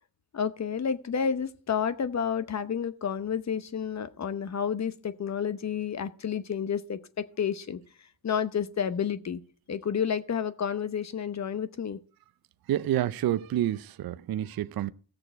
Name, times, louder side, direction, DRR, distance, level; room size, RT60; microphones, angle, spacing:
voice 1, 0.3-7.0 7.4-7.8 8.2-9.4 9.7-12.0, left 7 dB, 35° left, 0.8 m, -30 dB
voice 2, 12.7-14.9, right 12 dB, 50° right, 0.6 m, -28 dB
16.0 x 6.8 x 4.6 m
cardioid pair, 100°, 48 cm